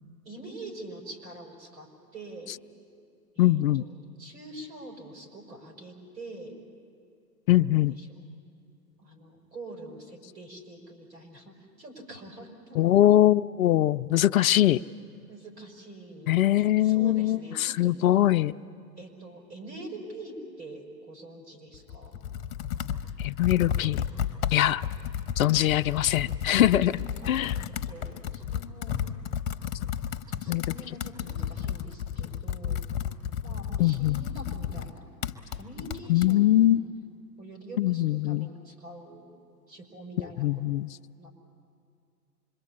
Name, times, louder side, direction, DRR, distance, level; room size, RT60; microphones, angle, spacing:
voice 1, 0.2-2.5 3.3-6.6 8.0-8.2 9.0-12.9 15.3-16.4 16.8-17.9 19.0-22.2 27.2-29.2 30.4-32.8 33.4-35.2 35.5-36.7 37.4-39.3 39.7-40.5 41.2-41.3, right 1 dB, 80° right, 3 dB, 5.9 m, -45 dB
voice 2, 3.4-3.8 7.5-8.0 12.7-14.8 16.3-18.5 23.2-24.0 24.5-24.8 25.4-27.0 27.2-27.6 30.5-30.6 33.8-34.2 36.1-36.9 37.8-38.5 40.2-41.0, left 14 dB, 60° left, 13 dB, 0.6 m, -22 dB
Computer keyboard, 21.7-36.3, left 9 dB, 35° left, 1.1 m, -33 dB
26.0 x 23.0 x 8.6 m, 2.4 s
hypercardioid pair, 125°, 49 cm